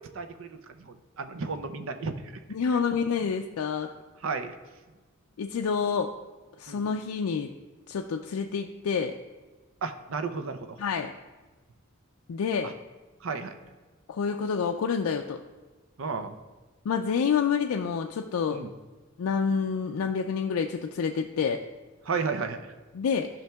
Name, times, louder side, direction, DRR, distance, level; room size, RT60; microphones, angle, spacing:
voice 1, 0.1-2.4 2.7-2.8 4.2-4.6 6.7-6.8 9.8-10.8 12.6-12.7 13.2-13.6 16.0-16.4 18.5-18.7 22.0-22.6, right 4 dB, 70° right, 8 dB, 0.5 m, -33 dB
voice 2, 2.5-3.9 5.4-6.1 6.6-7.5 7.9-9.2 10.8-11.1 12.3-12.7 14.1-15.4 16.9-18.6 19.2-21.6 22.9-23.3, left 6 dB, 90° left, 4 dB, 0.4 m, -28 dB
13.0 x 5.8 x 2.3 m, 1.2 s
head